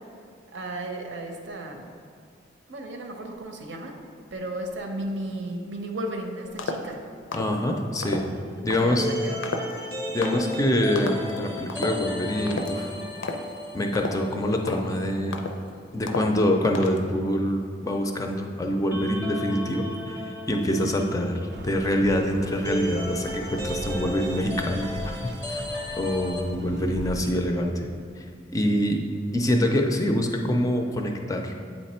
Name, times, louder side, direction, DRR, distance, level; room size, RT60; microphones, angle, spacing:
voice 1, 0.5-1.9 2.7-4.0 4.3-7.0 8.8-9.4 20.7-20.9, right 1 dB, 75° right, 3 dB, 0.8 m, -34 dB
sound 1, 6.6-6.9 7.3-7.6 8.0-8.3 8.7-9.0 9.4-9.8 10.2-10.5 11.0-11.3 11.7-12.0 12.5-12.8 13.2-13.5 13.9-14.3 14.7-14.9 15.3-15.7 16.1-16.4 16.7-17.1, left 3 dB, 85° left, 0.5 m, -32 dB
voice 2, 7.3-8.3 8.6-9.1 9.8-9.9 10.1-12.9 13.7-15.4 15.9-21.3 21.6-25.6 26.0-27.9 28.2-28.3 28.5-29.0 29.3-31.5, left 1 dB, 20° left, 3 dB, 0.4 m, -25 dB
sound 2, 8.2-14.9 15.2-15.3 18.9-26.4, left 1 dB, 15° right, 0.7 m, -35 dB
sound 3, 21.5-27.2, right 2 dB, 60° right, 0.4 m, -40 dB
8.2 x 3.3 x 4.2 m, 2.3 s
head